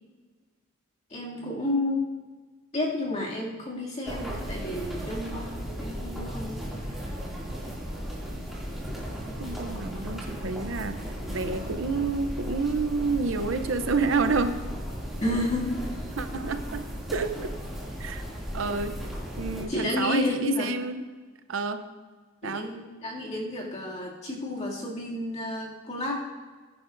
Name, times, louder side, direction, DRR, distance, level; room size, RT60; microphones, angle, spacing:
voice 1, 1.1-2.0 2.7-5.5 5.8-6.6 6.9-7.1 15.2-15.7 19.7-20.7 22.4-26.2, left 1 dB, 30° left, -4 dB, 2.4 m, -30 dB
sound 1, 4.0-19.6, equal, ahead, 2.4 m, -36 dB
voice 2, 9.4-11.0 11.3-14.6 16.2-17.5 18.0-18.2 18.5-21.0 21.5-21.9 22.4-22.7, right 4 dB, 65° right, 9 dB, 0.6 m, -29 dB
19.5 x 10.5 x 2.6 m, 1.4 s
head